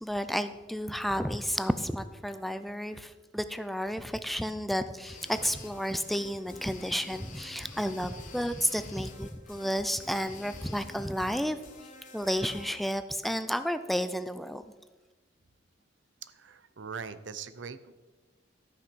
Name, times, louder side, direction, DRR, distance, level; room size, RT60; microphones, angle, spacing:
voice 1, 0.0-11.6 12.1-14.7, equal, ahead, 11 dB, 0.4 m, -32 dB
sound 1, 5.0-12.8, left 4 dB, 45° left, 1.4 m, -50 dB
voice 2, 16.2-17.9, right 6 dB, 90° right, 13 dB, 0.7 m, -42 dB
13.0 x 5.9 x 6.1 m, 1.2 s
head